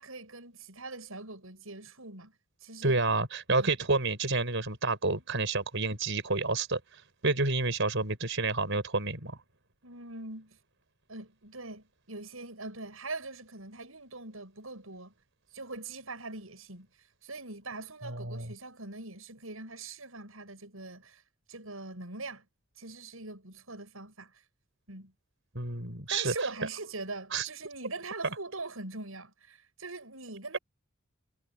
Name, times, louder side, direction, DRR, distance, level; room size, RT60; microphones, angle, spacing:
voice 1, 0.0-2.3 2.6-3.0 3.6-3.7 9.8-10.6 11.1-15.1 15.5-16.9 17.2-21.2 21.5-22.5 22.8-24.3 24.9-25.1 26.1-30.6, right 3 dB, 85° right, 7.4 m, -42 dB
voice 2, 2.8-9.4 18.1-18.5 25.6-26.5 27.3-27.5, right 3 dB, 65° right, 5.5 m, -29 dB
head